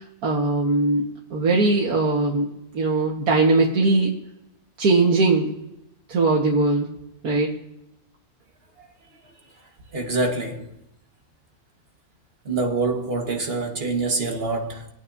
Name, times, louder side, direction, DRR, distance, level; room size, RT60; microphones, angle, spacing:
voice 1, 0.2-2.5 2.7-4.1 4.8-5.6 6.1-7.0 7.2-7.5, right 3 dB, 75° right, 2.0 m, -20 dB
voice 2, 9.9-10.7 12.5-14.9, right 3 dB, 40° right, 1.7 m, -25 dB
26.5 x 8.9 x 2.7 m
omnidirectional pair, 1.6 m